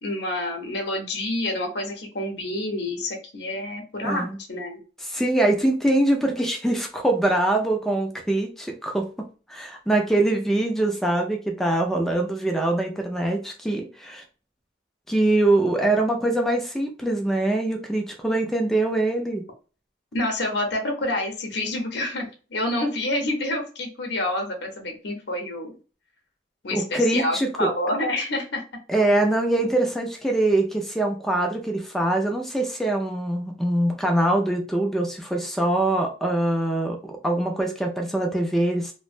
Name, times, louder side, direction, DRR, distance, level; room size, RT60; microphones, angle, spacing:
voice 1, 0.0-4.8 20.1-25.7 26.6-28.6, left 1 dB, 60° left, 3 dB, 0.8 m, -28 dB
voice 2, 4.0-4.4 5.1-9.1 9.5-14.2 15.1-19.4 26.7-27.7 28.9-38.9, right 1 dB, ahead, 2 dB, 0.4 m, -23 dB
3.0 x 2.1 x 2.4 m, 0.36 s
head